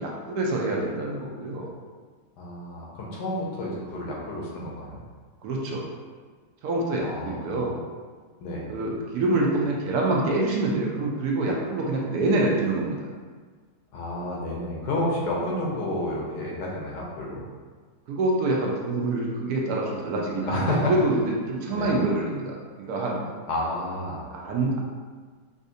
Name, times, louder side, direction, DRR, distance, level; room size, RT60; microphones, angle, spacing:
voice 1, 0.0-1.7 5.4-5.8 6.6-7.8 8.7-13.0 18.1-22.6 22.9-23.2 24.3-24.8, right 2 dB, 75° right, -2 dB, 1.1 m, -26 dB
voice 2, 2.4-5.0 7.0-7.6 8.4-8.7 13.9-17.4 20.5-20.9 21.7-21.9 23.5-24.2, left 1 dB, 90° left, -3 dB, 1.4 m, -30 dB
4.1 x 2.5 x 2.6 m, 1.5 s
omnidirectional pair, 1.8 m